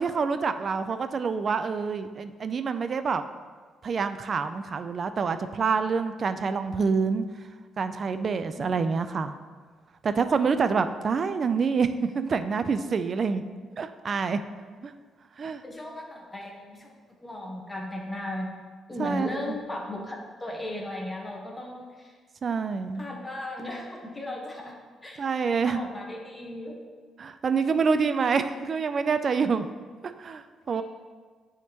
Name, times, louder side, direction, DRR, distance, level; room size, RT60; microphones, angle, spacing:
voice 1, 0.0-3.2 3.8-7.3 7.8-9.3 10.0-13.4 13.8-14.4 14.8-14.9 15.4-15.6 19.0-19.6 22.4-23.0 25.2-25.8 27.2-29.7 30.0-30.8, right 5 dB, 45° right, 10 dB, 0.3 m, -27 dB
voice 2, 15.6-18.5 18.9-22.1 22.9-24.8 25.0-25.3 25.6-26.8 30.7-30.8, left 1 dB, 15° left, 0 dB, 1.1 m, -36 dB
9.0 x 3.6 x 2.9 m, 1.5 s
cardioid pair, 90°, 0 cm